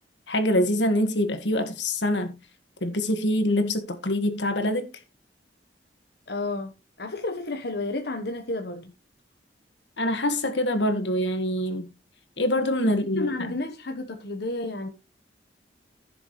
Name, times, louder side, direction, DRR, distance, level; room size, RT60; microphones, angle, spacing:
voice 1, 0.3-2.3 2.8-4.9 10.0-11.9 12.4-13.6, left 1 dB, 85° left, 1.8 m, -25 dB
voice 2, 6.3-6.7 7.0-8.9 12.8-14.9, left 2 dB, 65° left, 1.2 m, -31 dB
15.0 x 7.1 x 3.2 m
head